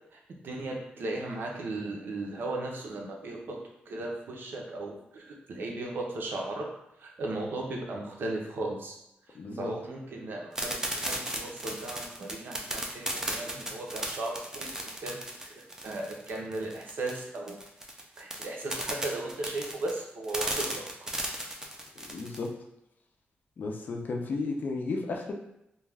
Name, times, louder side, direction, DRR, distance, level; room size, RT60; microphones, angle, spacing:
voice 1, 0.4-3.6 3.9-6.7 7.0-9.0 9.5-17.6 18.2-21.1, right 2 dB, 65° right, 0 dB, 0.6 m, -36 dB
voice 2, 9.3-9.7 22.0-22.5 23.6-25.3, left 3 dB, 50° left, 2 dB, 0.4 m, -34 dB
sound 1, 10.5-22.5, right 1 dB, 15° right, 0.4 m, -35 dB
2.3 x 2.2 x 3.3 m, 0.81 s
wide cardioid pair, 160°, 4 cm